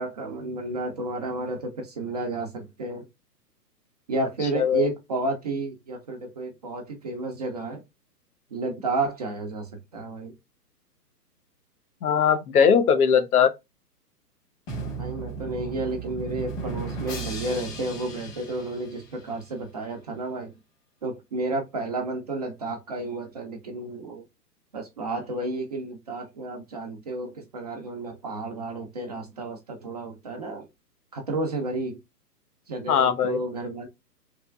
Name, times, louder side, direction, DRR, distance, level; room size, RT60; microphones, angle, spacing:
voice 1, 0.0-3.1 4.1-7.8 8.5-10.4 15.0-20.5 21.0-24.2 24.7-30.7 31.1-32.0 32.7-33.9, right 2 dB, 25° right, 0.4 m, -31 dB
voice 2, 12.0-13.5 32.9-33.4, left 7 dB, 65° left, 0.8 m, -20 dB
Drum, 14.7-19.5, right 3 dB, 35° left, 1.6 m, -35 dB
3.3 x 2.9 x 2.3 m
hypercardioid pair, 130°, 48 cm